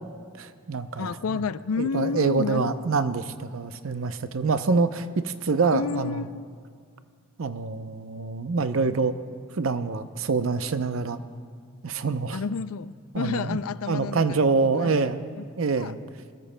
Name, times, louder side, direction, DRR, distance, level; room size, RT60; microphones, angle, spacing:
voice 1, 0.4-1.4 1.8-6.2 7.4-9.1 9.6-11.2 11.8-12.4 13.1-13.6 13.9-15.3 15.6-16.0, right 4 dB, 75° right, 10 dB, 0.6 m, -26 dB
voice 2, 1.0-2.9 5.7-6.5 12.3-14.4 14.7-14.9 15.4-15.5 15.8-15.9, left 5 dB, 90° left, 15 dB, 0.4 m, -30 dB
22.0 x 20.5 x 2.2 m, 2.1 s
head